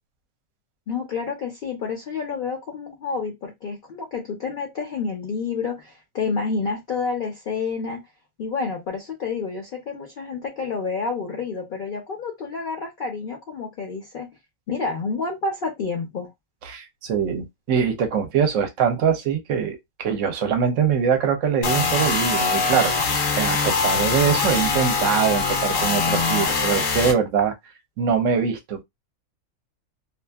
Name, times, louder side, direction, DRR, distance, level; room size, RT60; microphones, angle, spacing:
voice 1, 0.9-8.0 8.4-14.3 14.7-16.3, left 4 dB, 50° left, 0.7 m, -29 dB
voice 2, 16.6-27.5 28.0-28.8, right 7 dB, 70° right, 1.0 m, -23 dB
sound 1, 21.6-27.1, left 4 dB, 70° left, 1.0 m, -22 dB
2.6 x 2.4 x 2.2 m
omnidirectional pair, 1.5 m